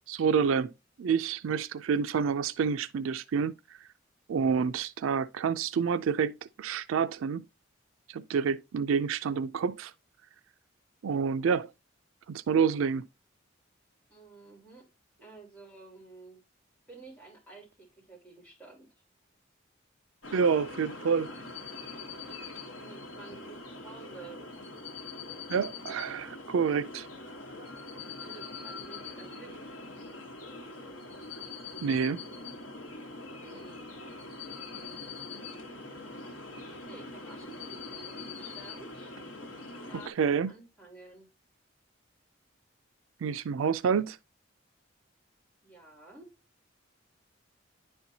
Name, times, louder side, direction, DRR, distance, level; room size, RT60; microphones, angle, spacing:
voice 1, 0.1-0.7 1.0-3.5 4.3-7.4 8.1-9.9 11.0-11.7 12.3-13.1 20.3-21.3 25.5-27.1 31.8-32.2 40.1-40.5 43.2-44.2, right 6 dB, 85° right, 0.4 m, -28 dB
voice 2, 14.1-14.9 15.2-16.4 16.9-18.9 22.8-24.4 28.2-29.6 33.4-33.9 36.8-39.2 39.7-40.2 40.5-41.3 45.6-46.3, right 3 dB, 10° left, 3.6 m, -51 dB
sound 1, 20.2-40.1, left 3 dB, 75° left, 1.2 m, -43 dB
10.0 x 4.4 x 2.7 m
head